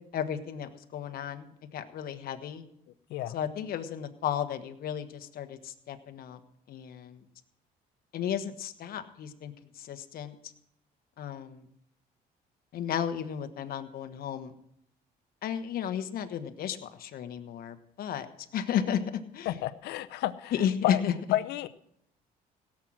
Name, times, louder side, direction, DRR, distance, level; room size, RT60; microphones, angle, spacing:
voice 1, 0.1-2.6 3.3-6.4 6.7-7.2 8.1-9.5 9.8-10.3 11.2-11.6 12.7-14.5 15.4-18.3 18.5-19.0 19.3-19.5 20.6-21.1, left 9 dB, 60° left, 8 dB, 1.3 m, -33 dB
voice 2, 19.5-21.0 21.3-21.7, left 14 dB, 85° left, 12 dB, 0.8 m, -31 dB
17.0 x 7.5 x 6.3 m, 0.73 s
cardioid pair, 110°, 17 cm